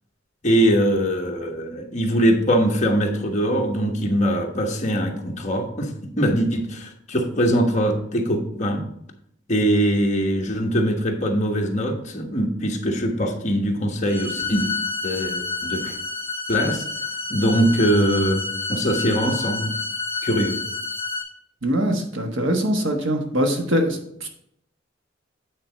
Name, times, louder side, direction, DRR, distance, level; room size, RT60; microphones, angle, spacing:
voice 1, 0.4-8.8 9.5-14.7 15.0-16.0 16.5-16.8 17.3-19.7 20.2-20.6, equal, 40° left, 1 dB, 1.2 m, -22 dB
sound 1, 14.1-21.2, left 3 dB, 10° left, 1.8 m, -29 dB
voice 2, 21.6-24.3, equal, 75° right, 3 dB, 1.3 m, -23 dB
8.8 x 3.9 x 5.7 m, 0.73 s
head